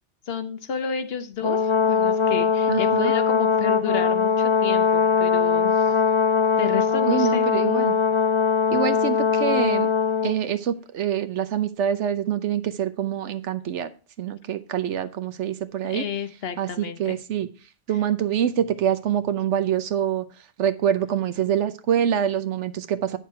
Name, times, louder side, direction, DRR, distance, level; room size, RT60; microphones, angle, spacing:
voice 1, 0.2-5.9 6.6-7.5 15.9-17.2, left 7 dB, 60° left, 1.1 m, -31 dB
Brass instrument, 1.4-10.4, left 6 dB, 40° left, 0.4 m, -21 dB
voice 2, 2.7-3.1 7.1-7.9 8.7-9.9 10.2-13.9 14.2-16.1 16.6-17.5 17.9-20.3 20.6-23.2, right 9 dB, 80° right, 1.1 m, -25 dB
9.3 x 6.5 x 4.3 m
omnidirectional pair, 1.2 m